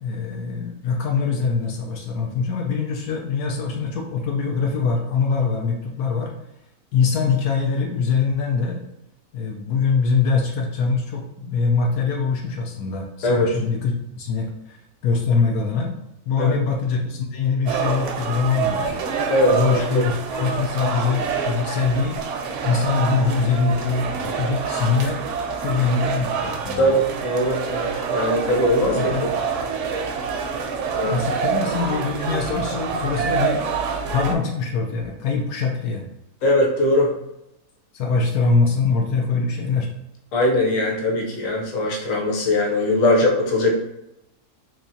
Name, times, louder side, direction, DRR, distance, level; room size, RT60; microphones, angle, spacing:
voice 1, 0.0-6.3 6.9-8.8 9.3-14.8 15.0-15.9 16.3-18.9 19.5-22.2 22.6-25.2 25.6-26.9 28.9-29.3 31.0-33.7 34.1-36.0 37.9-39.9, left 5 dB, 85° left, 0 dB, 1.1 m, -23 dB
sound 1, 17.7-34.3, right 6 dB, 70° right, 0.8 m, -26 dB
voice 2, 19.3-20.1 26.8-29.3 30.9-31.2 36.4-37.1 40.3-43.8, left 1 dB, 60° left, -1 dB, 1.1 m, -20 dB
3.5 x 2.9 x 2.7 m, 0.84 s
omnidirectional pair, 1.6 m